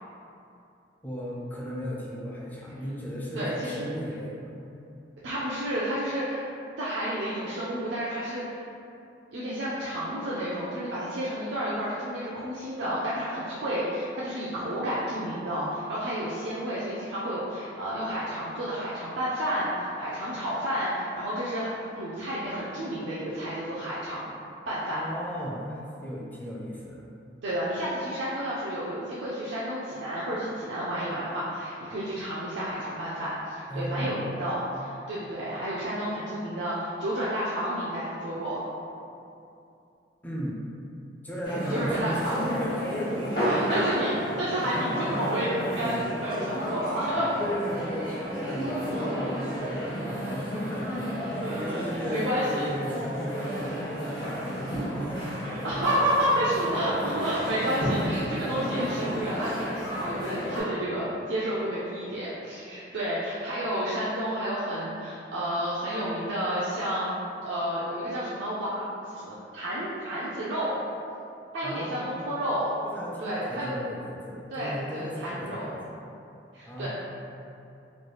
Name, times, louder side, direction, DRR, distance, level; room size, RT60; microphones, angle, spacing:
voice 1, 1.0-4.6 24.9-27.0 33.7-34.3 40.2-40.6 41.2-43.6 45.8-45.9 47.4-55.3 71.6-72.4 72.8-76.0 76.7-76.9, equal, 10° left, -4 dB, 0.4 m, -35 dB
voice 2, 3.4-3.9 5.2-6.4 6.8-8.6 9.3-21.7 21.9-24.3 24.7-25.0 27.4-38.6 41.7-42.4 43.4-47.4 49.6-49.9 51.4-52.7 55.6-67.1 67.4-70.7 71.5-72.7 73.2-73.7 74.5-75.7 76.5-76.9, equal, 80° right, -8 dB, 0.5 m, -30 dB
sound 1, 41.4-60.6, equal, 55° left, 1.1 m, -32 dB
3.1 x 2.3 x 3.0 m, 2.6 s
head